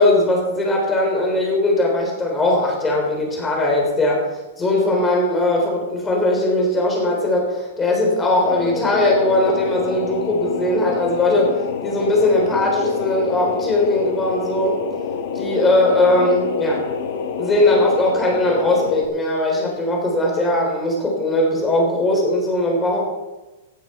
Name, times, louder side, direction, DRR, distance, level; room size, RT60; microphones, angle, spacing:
voice 1, 0.0-4.3 4.6-11.5 11.8-14.8 15.4-16.8 17.4-23.0, left 1 dB, 10° left, -1 dB, 3.6 m, -19 dB
sound 1, 8.4-19.0, left 6 dB, 50° left, 1.6 m, -27 dB
16.0 x 12.0 x 4.4 m, 1.1 s
supercardioid pair, 170°, 0 cm